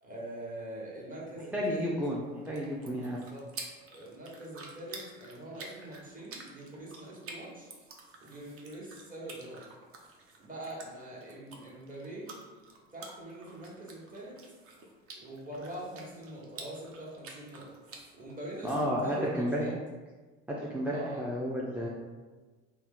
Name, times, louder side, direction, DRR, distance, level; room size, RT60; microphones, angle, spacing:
voice 1, 0.0-1.9 3.2-3.5 3.9-7.7 8.2-9.6 10.4-12.3 12.9-14.4 15.1-17.7 18.1-19.8 20.9-21.2, right 1 dB, 25° right, -5 dB, 1.2 m, -43 dB
voice 2, 1.5-2.2 2.4-3.2 18.6-19.7 20.5-21.9, equal, 5° right, -5 dB, 0.4 m, -31 dB
sound 1, 2.2-18.8, right 3 dB, 45° right, 0.6 m, -50 dB
2.7 x 2.1 x 3.6 m, 1.3 s
hypercardioid pair, 75°, 32 cm